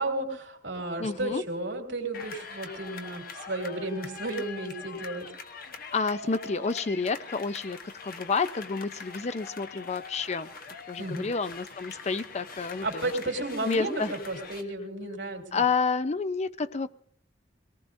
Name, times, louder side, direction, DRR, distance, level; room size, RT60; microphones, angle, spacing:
voice 1, 0.0-5.3 11.0-11.3 12.8-15.6, right 2 dB, 80° right, 1 dB, 3.0 m, -33 dB
voice 2, 1.0-1.4 5.9-10.5 10.9-13.1 13.6-14.1 15.5-16.9, left 4 dB, 40° left, 13 dB, 0.5 m, -29 dB
sound 1, 2.1-14.6, left 4 dB, 55° left, 1.1 m, -43 dB
23.5 x 18.5 x 2.6 m, 0.62 s
head